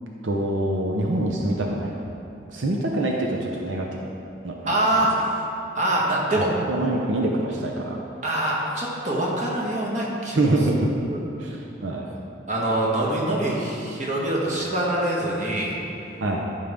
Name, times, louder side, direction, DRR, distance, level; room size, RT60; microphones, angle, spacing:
voice 1, 0.2-1.9 2.5-3.9 4.4-4.8 6.6-7.9 10.4-10.9 11.4-12.1 16.2-16.4, right 1 dB, 85° right, -1 dB, 0.8 m, -25 dB
voice 2, 4.7-5.3 5.7-6.5 8.2-10.5 11.1-11.2 12.1-12.2 12.5-15.8, right 1 dB, 40° right, -4 dB, 1.6 m, -24 dB
12.5 x 5.6 x 3.7 m, 2.8 s
head